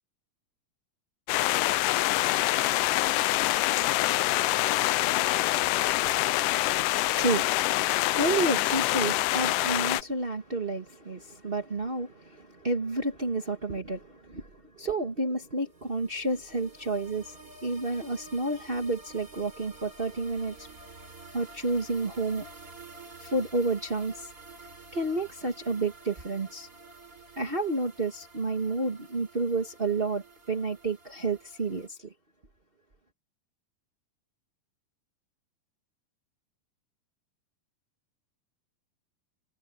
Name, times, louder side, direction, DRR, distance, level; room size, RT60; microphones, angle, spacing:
sound 1, 1.3-10.0, left 17 dB, 80° left, 2.0 m, -25 dB
voice 1, 6.5-7.4 7.8-14.0 14.3-14.4 14.8-20.5 21.3-22.5 23.2-24.3 24.9-26.7 27.4-31.9, right 2 dB, 65° right, 0.5 m, -30 dB
sound 2, 15.7-31.9, right 3 dB, 25° right, 3.5 m, -50 dB
omnidirectional pair, 4.2 m